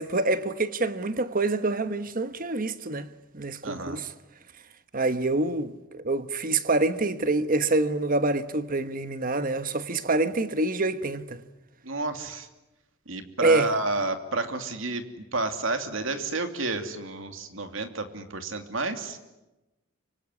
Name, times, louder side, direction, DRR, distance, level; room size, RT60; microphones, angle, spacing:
voice 1, 0.0-3.1 3.3-4.1 4.9-11.4 13.4-13.7, right 2 dB, 45° right, 1.3 m, -26 dB
voice 2, 3.6-4.0 11.8-12.5 13.1-19.2, right 2 dB, 70° right, 2.8 m, -30 dB
25.5 x 24.0 x 9.7 m
head